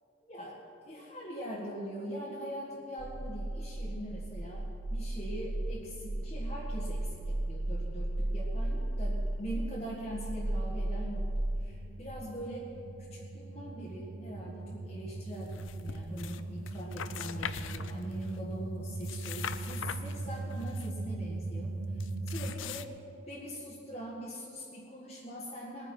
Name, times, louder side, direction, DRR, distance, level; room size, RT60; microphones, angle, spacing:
voice 1, 0.3-11.3 11.6-12.7 13.1-22.0 22.2-22.9 23.3-25.9, equal, 30° left, -6 dB, 1.6 m, -42 dB
sound 1, 3.0-22.5, right 2 dB, 70° right, 0.8 m, -36 dB
sound 2, 15.4-16.4 16.7-18.4 18.9-20.9 22.0-22.9, left 8 dB, 70° left, 0.5 m, -42 dB
20.5 x 9.7 x 4.5 m, 2.8 s
head